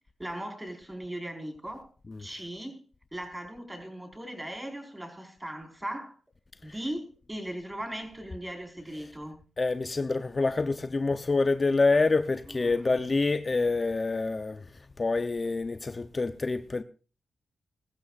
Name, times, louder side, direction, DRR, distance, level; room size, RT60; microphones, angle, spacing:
voice 1, 0.2-1.8 2.2-2.8 3.1-6.1 6.6-9.4 12.5-12.9, right 1 dB, 15° right, 4.9 m, -38 dB
voice 2, 9.6-14.6 15.0-16.8, left 3 dB, 40° left, 0.7 m, -26 dB
21.5 x 14.0 x 2.5 m
supercardioid pair, 50°, 0 cm